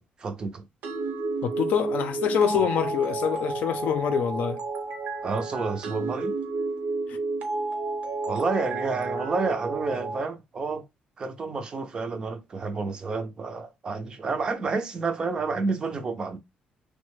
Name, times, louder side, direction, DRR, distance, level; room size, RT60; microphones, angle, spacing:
voice 1, 0.2-0.6 5.2-6.4 8.3-10.8 11.2-16.4, right 4 dB, 30° right, 0.4 m, -29 dB
sound 1, 0.8-10.2, right 3 dB, 80° right, 0.9 m, -31 dB
voice 2, 1.4-4.6, left 8 dB, 65° left, 0.5 m, -25 dB
3.1 x 2.1 x 3.1 m
cardioid pair, 170°, 3 cm